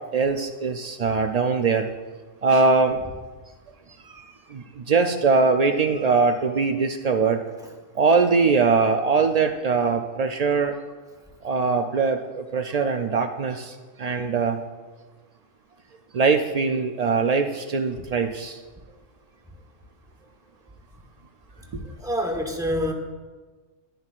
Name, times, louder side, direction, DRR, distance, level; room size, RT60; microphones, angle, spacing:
voice 1, 0.1-1.9 2.4-3.0 4.1-7.4 8.0-10.7 11.4-14.6 16.1-18.6 21.7-21.8, right 4 dB, 85° right, 5 dB, 0.3 m, -22 dB
voice 2, 21.7-22.9, equal, 5° right, 1 dB, 1.0 m, -27 dB
13.5 x 10.5 x 2.4 m, 1.3 s
omnidirectional pair, 1.3 m